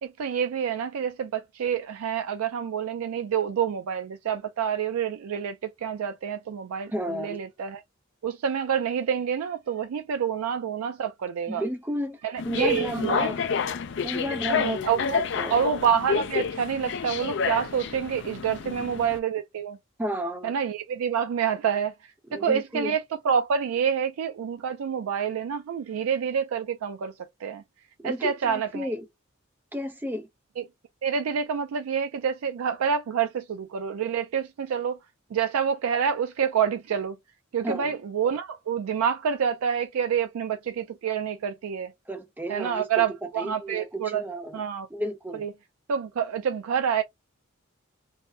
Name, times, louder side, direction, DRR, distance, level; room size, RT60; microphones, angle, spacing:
voice 1, 0.0-7.8 8.2-11.6 12.2-13.3 14.5-15.2 15.5-19.8 20.4-21.9 22.3-27.6 28.0-28.9 30.6-30.7 31.0-35.0 35.3-37.2 37.5-41.9 42.5-44.2 44.5-44.9 45.4-45.5 45.9-47.0, right 7 dB, 85° right, 0.4 m, -27 dB
voice 2, 6.9-7.4 11.5-12.2 12.4-13.4 14.0-15.0 15.3-15.6 18.6-18.9 20.0-20.5 22.3-23.0 28.0-29.1 29.7-30.3 37.6-37.9 42.1-43.0 43.4-44.6 44.9-45.5, equal, 10° right, 0.4 m, -32 dB
sound 1, 12.4-19.2, left 6 dB, 55° left, 0.4 m, -29 dB
3.5 x 2.0 x 2.6 m
head